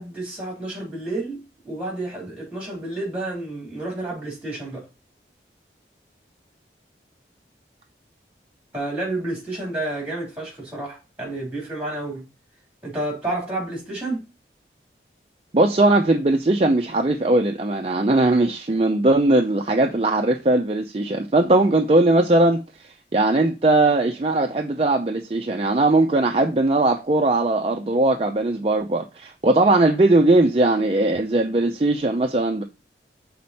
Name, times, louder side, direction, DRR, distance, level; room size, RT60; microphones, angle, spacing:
voice 1, 0.0-4.9 8.7-12.2 12.8-14.2, right 2 dB, 5° right, 3.1 m, -30 dB
voice 2, 15.5-22.6 23.1-32.6, right 2 dB, 35° right, 0.5 m, -19 dB
6.0 x 4.3 x 4.1 m
head